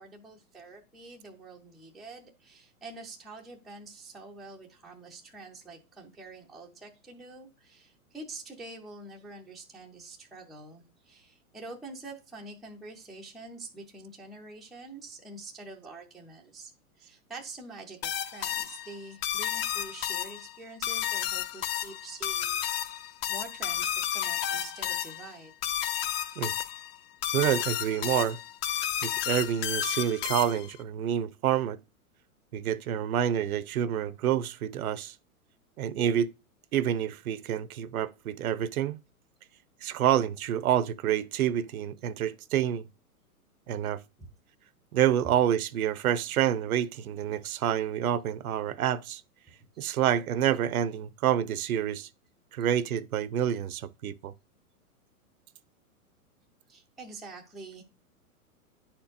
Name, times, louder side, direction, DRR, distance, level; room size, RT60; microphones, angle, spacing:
voice 1, 0.0-16.7 17.0-22.6 23.3-25.5 44.2-44.3 45.2-45.3 56.7-57.8, right 3 dB, ahead, 0.4 m, -46 dB
sound 1, 18.0-30.8, left 11 dB, 45° left, 0.8 m, -32 dB
voice 2, 27.3-28.4 29.0-31.8 32.5-35.1 35.8-36.3 36.7-39.0 39.8-42.8 43.7-44.0 44.9-49.2 49.8-52.1 52.5-54.3, right 10 dB, 70° right, 0.7 m, -28 dB
9.9 x 4.4 x 2.5 m
hypercardioid pair, 125°, 45 cm